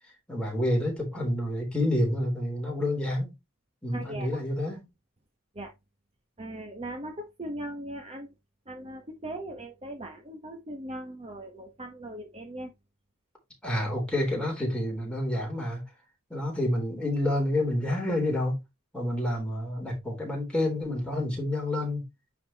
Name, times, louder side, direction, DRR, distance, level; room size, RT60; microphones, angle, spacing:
voice 1, 0.3-3.3 3.8-4.9 13.6-15.8 16.3-18.6 18.9-22.1, left 1 dB, 5° left, 3.6 m, -28 dB
voice 2, 3.9-4.4 5.5-5.7 6.4-8.3 8.7-12.7, right 1 dB, 25° right, 1.1 m, -39 dB
9.4 x 4.8 x 2.9 m
head